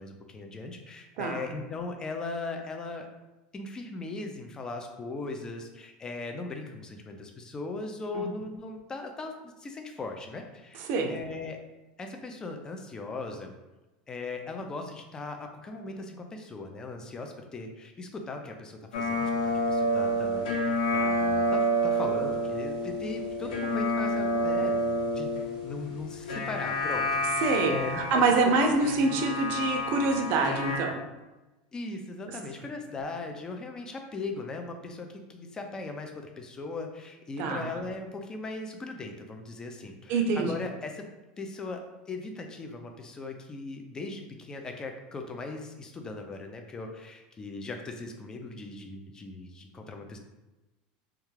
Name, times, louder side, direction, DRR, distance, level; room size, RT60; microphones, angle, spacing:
voice 1, 0.0-3.1 3.5-11.6 12.0-13.5 14.1-28.2 28.6-28.7 29.1-29.3 31.7-41.1 41.4-50.2, left 3 dB, 15° left, 4 dB, 0.3 m, -39 dB
sound 1, 18.9-30.8, equal, 90° left, 0.5 m, -29 dB
voice 2, 27.4-31.0 37.4-37.7 40.1-40.5, right 3 dB, 55° right, 3 dB, 0.5 m, -25 dB
2.3 x 2.2 x 3.1 m, 1.1 s
supercardioid pair, 140°, 4 cm